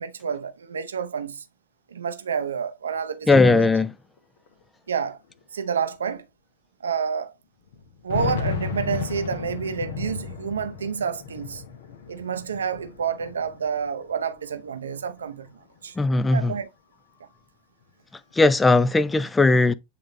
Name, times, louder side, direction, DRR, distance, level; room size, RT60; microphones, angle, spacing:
voice 1, 0.0-1.4 1.9-3.6 4.9-5.2 5.5-6.3 6.8-7.3 8.0-11.6 12.1-15.9 16.3-16.7, right 6 dB, 70° right, 0.7 m, -29 dB
voice 2, 3.3-3.9 16.0-16.5 18.3-19.7, left 3 dB, 10° left, 0.5 m, -18 dB
sound 1, 4.2-4.3 4.5-4.6 5.4-5.5 6.0-6.1 7.7-14.1 14.5-15.5, left 6 dB, 60° left, 1.1 m, -34 dB
8.4 x 3.7 x 3.0 m
figure-of-eight pair, 90°, 0 cm